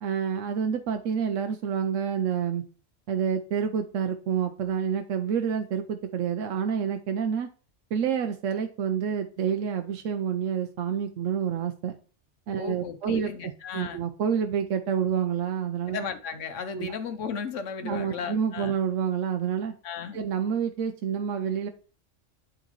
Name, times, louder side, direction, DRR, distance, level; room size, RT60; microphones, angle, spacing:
voice 1, 0.0-2.6 3.1-7.5 7.9-12.0 12.5-16.0 16.7-16.9 17.8-19.7 20.1-21.7, right 7 dB, 90° right, 6 dB, 1.0 m, -28 dB
voice 2, 12.6-14.0 15.9-18.7 19.8-20.2, left 6 dB, 75° left, 9 dB, 1.1 m, -35 dB
10.5 x 3.9 x 3.0 m, 0.37 s
omnidirectional pair, 1.3 m